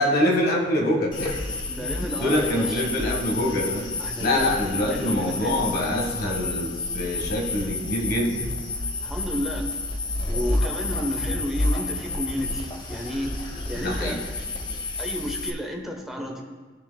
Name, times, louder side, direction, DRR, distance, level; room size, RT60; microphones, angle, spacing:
voice 1, 0.0-1.4 1.8-1.9 2.2-3.9 4.2-8.5 13.8-14.2, left 1 dB, 55° left, 0 dB, 1.6 m, -25 dB
sound 1, 1.1-15.5, left 2 dB, 25° left, 0.9 m, -30 dB
voice 2, 1.7-2.8 4.0-5.5 9.0-9.7 10.3-13.3 13.7-14.4 15.0-16.4, equal, ahead, 1 dB, 1.0 m, -32 dB
16.5 x 6.5 x 2.3 m, 1.4 s
head